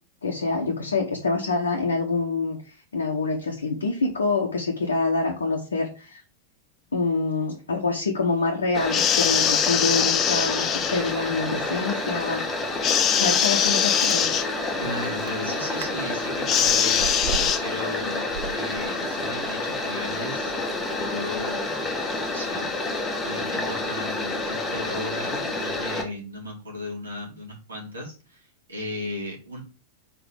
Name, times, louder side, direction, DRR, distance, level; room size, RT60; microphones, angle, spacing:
voice 1, 0.2-2.6 2.9-6.2 6.9-12.4 13.1-14.3, left 3 dB, 70° left, 0 dB, 0.9 m, -26 dB
sound 1, 8.7-26.0, left 2 dB, 15° left, 1.4 m, -29 dB
sound 2, 8.9-11.1 12.8-14.5 16.5-17.6, left 9 dB, 30° left, 0.6 m, -22 dB
Chewing mastication, 13.9-14.2 14.8-14.9 15.2-15.4 15.8-15.9 16.2-17.7 18.1-19.3 19.7-19.8, right 7 dB, 50° right, 0.6 m, -35 dB
voice 2, 14.8-17.3 17.6-29.6, left 1 dB, 75° right, -3 dB, 3.1 m, -36 dB
5.0 x 3.9 x 4.9 m, 0.34 s
figure-of-eight pair, 90°, 0 cm